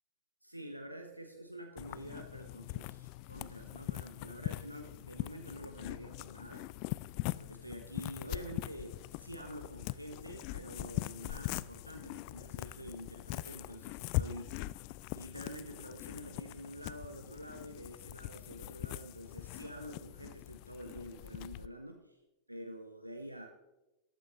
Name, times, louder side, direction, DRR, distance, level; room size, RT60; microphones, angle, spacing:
voice 1, 0.4-6.7 7.3-14.5 15.1-22.2 22.5-23.5, equal, 90° right, 4 dB, 0.8 m, -47 dB
sound 1, 1.8-21.7, left 17 dB, 45° left, 0.3 m, -42 dB
14.0 x 11.5 x 3.0 m, 1.0 s
figure-of-eight pair, 90°, 0 cm